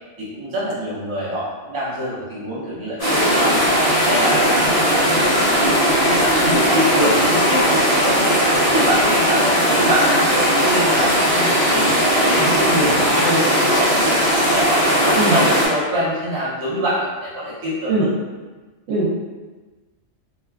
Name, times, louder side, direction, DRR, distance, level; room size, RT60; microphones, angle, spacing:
voice 1, 0.2-3.7 4.0-5.7 6.0-8.3 8.7-11.9 12.3-14.2 14.5-18.1, equal, 20° right, -8 dB, 0.6 m, -24 dB
sound 1, 3.0-15.7, equal, 30° left, 1.0 m, -17 dB
voice 2, 15.2-15.4 17.9-18.0 18.9-19.1, right 3 dB, 80° right, -5 dB, 1.1 m, -19 dB
2.9 x 2.2 x 2.3 m, 1.3 s
omnidirectional pair, 1.3 m